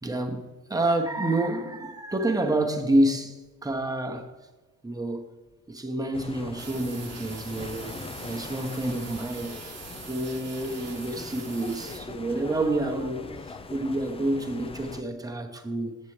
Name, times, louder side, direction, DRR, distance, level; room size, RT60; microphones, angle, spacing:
voice 1, 0.0-4.3 4.8-5.3 5.7-9.8 10.1-16.0, right 1 dB, 10° right, 1.0 m, -28 dB
sound 1, 6.1-15.0, left 4 dB, 15° left, 0.4 m, -41 dB
sound 2, 6.6-12.0, right 6 dB, 35° right, 1.1 m, -44 dB
7.4 x 7.3 x 3.2 m
hypercardioid pair, 60°, 42 cm